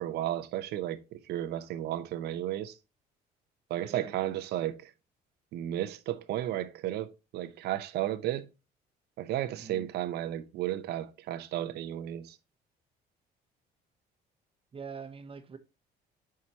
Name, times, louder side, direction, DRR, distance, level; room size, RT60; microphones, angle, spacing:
voice 1, 0.0-2.8 3.7-4.9 5.5-8.5 9.2-12.4, right 12 dB, 75° right, 0.7 m, -33 dB
voice 2, 3.8-4.1 9.6-9.9 14.7-15.6, right 5 dB, 35° right, 1.0 m, -44 dB
7.5 x 4.8 x 2.8 m
cardioid pair, 110°, 17 cm